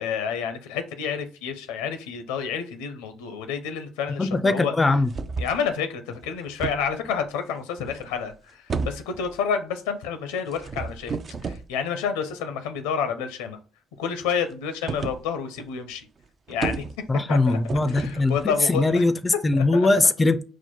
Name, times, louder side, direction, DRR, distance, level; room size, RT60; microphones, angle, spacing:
voice 1, 0.0-4.8 5.4-13.6 14.0-16.1 16.5-16.8 17.3-17.6 17.9-19.0 19.5-19.9, left 7 dB, 85° left, 0.6 m, -29 dB
voice 2, 4.2-5.1 17.1-20.4, left 2 dB, 25° left, 0.4 m, -21 dB
sound 1, 5.0-5.6 6.1-7.2 7.8-8.4 8.7-9.5 10.5-11.7 14.9-15.2 15.6-15.7 15.9-16.0 16.3-17.2 17.7-18.9, right 4 dB, 45° right, 0.4 m, -33 dB
4.5 x 2.1 x 4.3 m
hypercardioid pair, 55°, 0 cm